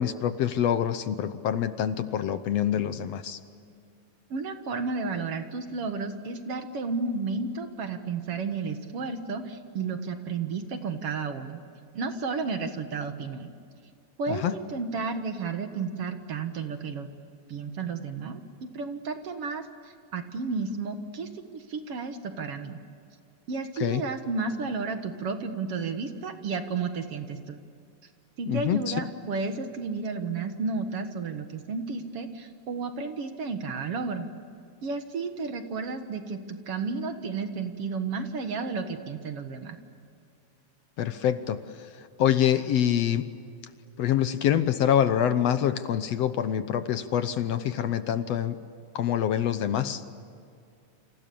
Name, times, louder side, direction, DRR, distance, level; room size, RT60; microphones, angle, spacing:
voice 1, 0.0-3.4 14.3-14.5 23.8-24.0 28.5-28.9 41.0-43.2 44.0-48.6 49.0-50.0, left 10 dB, 65° left, 11 dB, 1.9 m, -26 dB
voice 2, 4.3-11.6 11.9-13.5 14.2-17.1 17.5-18.4 18.7-22.8 23.5-27.6 28.4-34.3 34.8-39.8, right 4 dB, 55° right, 7 dB, 2.3 m, -32 dB
29.0 x 27.5 x 7.0 m, 2.4 s
omnidirectional pair, 3.4 m